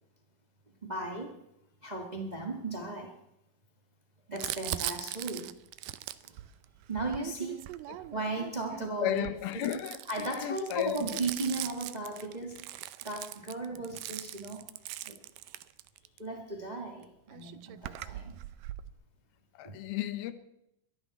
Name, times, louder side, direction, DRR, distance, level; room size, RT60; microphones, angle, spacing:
voice 1, 0.8-1.3 1.8-3.2 4.3-5.5 6.2-6.4 6.9-7.6 8.1-9.3 9.5-9.6 10.1-14.7 15.0-15.2 16.2-18.4 19.6-19.8, right 2 dB, 40° right, 0.6 m, -36 dB
Crumpling crinkling, 4.4-8.4 9.1-16.2 17.0-17.1 17.3-18.9, right 14 dB, 75° right, 2.1 m, -40 dB
voice 2, 8.4-11.2 19.6-20.3, left 13 dB, 85° left, 2.9 m, -35 dB
22.5 x 14.5 x 4.1 m
omnidirectional pair, 4.3 m